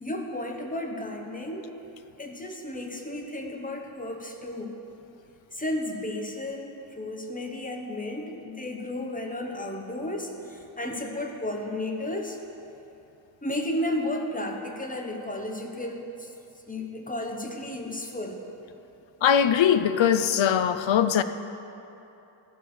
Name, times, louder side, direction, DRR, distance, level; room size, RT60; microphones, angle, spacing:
voice 1, 0.0-1.7 2.2-4.8 5.5-12.4 13.4-16.3 16.7-18.4, left 1 dB, 15° left, 1.1 m, -33 dB
voice 2, 19.2-21.2, left 8 dB, 70° left, 0.6 m, -21 dB
14.0 x 5.0 x 6.3 m
wide cardioid pair, 60°, 48 cm